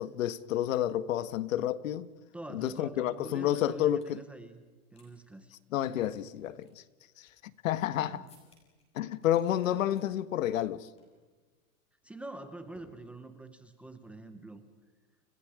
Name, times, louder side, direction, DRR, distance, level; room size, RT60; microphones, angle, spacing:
voice 1, 0.0-2.1 2.5-4.2 5.7-6.8 7.2-7.3 7.6-8.2 8.9-10.9, left 12 dB, 65° left, 1.5 m, -30 dB
voice 2, 2.3-4.6 4.9-5.5 8.0-8.4 9.6-9.9 12.0-14.6, right 2 dB, 5° right, 0.8 m, -46 dB
sound 1, 3.7-4.2 4.6-5.1 5.3-5.4 6.0-7.9 8.3-8.8 9.2-10.1 10.4-10.7 11.0-11.2 11.5-11.8 12.7-13.5, left 2 dB, 15° left, 6.2 m, -65 dB
30.0 x 29.5 x 5.0 m
supercardioid pair, 170°, 44 cm